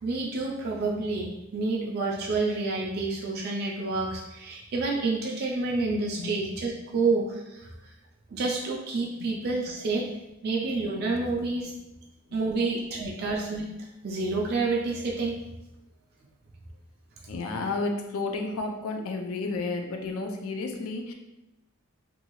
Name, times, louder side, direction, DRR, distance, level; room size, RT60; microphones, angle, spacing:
voice 1, 0.0-7.7 8.3-10.0 10.4-11.7 12.3-13.7 14.0-15.3, right 3 dB, 45° right, -3 dB, 0.3 m, -28 dB
voice 2, 17.3-21.1, left 3 dB, 75° left, 4 dB, 0.4 m, -32 dB
2.6 x 2.3 x 2.9 m, 0.94 s
head